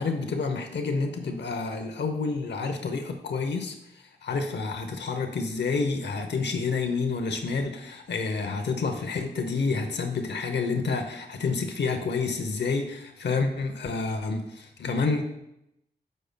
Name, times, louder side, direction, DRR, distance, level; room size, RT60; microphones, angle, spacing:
voice 1, 0.0-3.7 4.2-15.2, left 4 dB, 85° left, 5 dB, 0.7 m, -29 dB
10.5 x 6.5 x 2.2 m, 0.83 s
wide cardioid pair, 80°, 18 cm